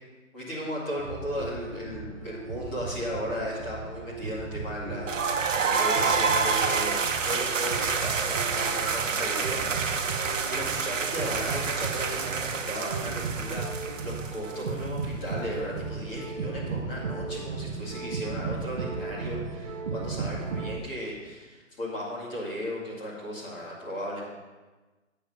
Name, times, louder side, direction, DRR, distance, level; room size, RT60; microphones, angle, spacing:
voice 1, 0.3-7.0 7.2-24.3, equal, 15° left, -7 dB, 2.2 m, -36 dB
sound 1, 1.0-20.8, right 4 dB, 25° right, 0.8 m, -36 dB
sound 2, 5.1-14.8, right 5 dB, 70° right, 1.0 m, -28 dB
8.8 x 6.5 x 5.5 m, 1.2 s
hypercardioid pair, 155°, 39 cm